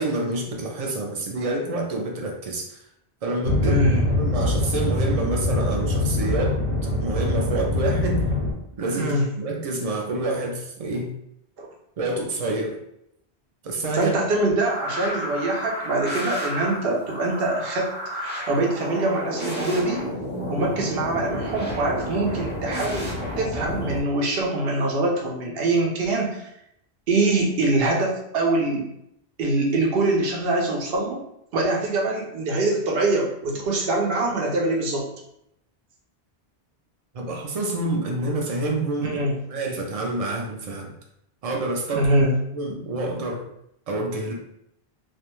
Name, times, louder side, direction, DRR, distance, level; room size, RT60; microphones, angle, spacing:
voice 1, 0.0-2.8 3.2-3.9 4.2-6.6 7.0-8.2 8.8-11.1 12.0-12.8 13.6-14.2 37.1-40.9 41.4-42.1 42.5-43.5 43.9-44.3, right 2 dB, 50° right, 0 dB, 0.4 m, -27 dB
sound 1, 3.4-8.5, left 2 dB, 90° right, 1.1 m, -23 dB
voice 2, 3.6-4.1 8.9-9.3 11.6-11.7 13.9-20.0 20.5-23.1 23.4-26.5 27.1-28.9 29.4-31.2 31.5-35.1 39.0-39.3 41.9-42.3, right 2 dB, 70° right, 0 dB, 0.8 m, -24 dB
sound 2, 14.6-24.0, left 1 dB, 15° left, 0.4 m, -31 dB
2.4 x 2.2 x 3.0 m, 0.77 s
omnidirectional pair, 1.1 m